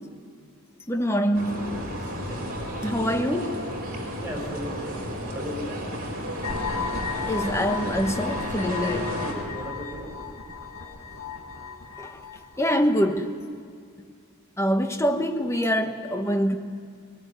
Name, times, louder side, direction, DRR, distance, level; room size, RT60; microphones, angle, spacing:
voice 1, 0.9-1.7 2.8-3.6 7.3-9.1 12.0-12.2 12.6-13.3 14.6-16.6, equal, 15° left, 6 dB, 1.1 m, -25 dB
sound 1, 1.3-9.3, equal, 45° right, 4.5 m, -33 dB
sound 2, 1.4-11.6, left 2 dB, 40° left, 3.9 m, -47 dB
voice 2, 2.1-3.1 4.2-5.9 8.9-10.2 15.8-16.1, equal, 10° right, -3 dB, 5.8 m, -38 dB
sound 3, 6.4-13.1, left 5 dB, 75° left, 1.7 m, -35 dB
20.5 x 20.5 x 9.3 m, 2.2 s
head